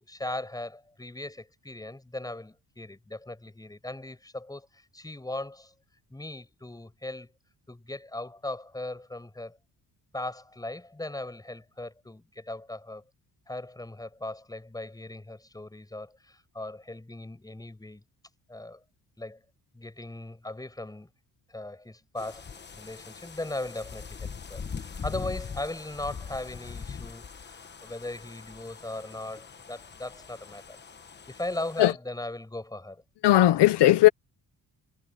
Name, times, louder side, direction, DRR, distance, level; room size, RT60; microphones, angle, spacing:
voice 1, 0.0-5.7 6.1-7.3 7.7-9.6 10.1-13.0 13.5-18.0 18.5-18.8 19.2-19.4 19.7-21.1 21.5-30.8 31.3-33.0 33.3-33.4, left 2 dB, 10° left, 6.1 m, -38 dB
sound 1, 22.2-31.9, left 6 dB, 25° left, 1.2 m, -42 dB
voice 2, 33.2-34.1, left 14 dB, 85° left, 1.0 m, -17 dB
cardioid pair, 165°, 40 cm